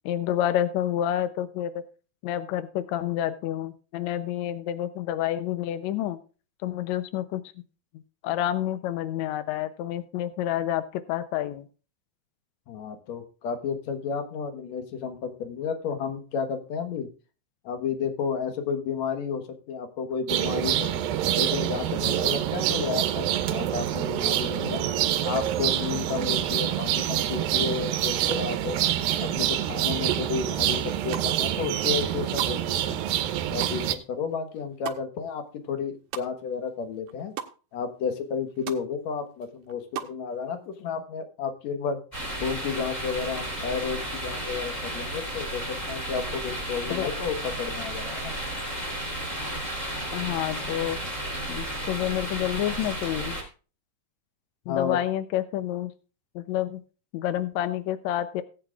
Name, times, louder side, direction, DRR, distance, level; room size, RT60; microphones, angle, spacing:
voice 1, 0.0-1.8 2.2-6.2 6.6-7.4 8.2-11.7 46.9-47.1 50.1-51.0 51.5-53.4 54.7-55.9 56.3-56.8 57.1-58.4, left 12 dB, 85° left, 12 dB, 1.5 m, -28 dB
voice 2, 12.7-17.1 17.6-21.0 21.4-24.9 25.2-28.8 29.2-33.1 33.5-37.3 37.7-42.0 42.4-48.3 54.7-55.0, left 6 dB, 60° left, 7 dB, 2.2 m, -32 dB
sound 1, 20.3-33.9, right 11 dB, 90° right, 2.5 m, -26 dB
sound 2, 30.9-31.6 31.9-36.7 36.9-37.5 37.9-38.0 38.3-38.8 39.2-40.2, right 10 dB, 70° right, 2.0 m, -38 dB
sound 3, 42.1-53.4, right 1 dB, 15° left, 2.8 m, -33 dB
18.0 x 8.8 x 2.4 m, 0.35 s
omnidirectional pair, 4.1 m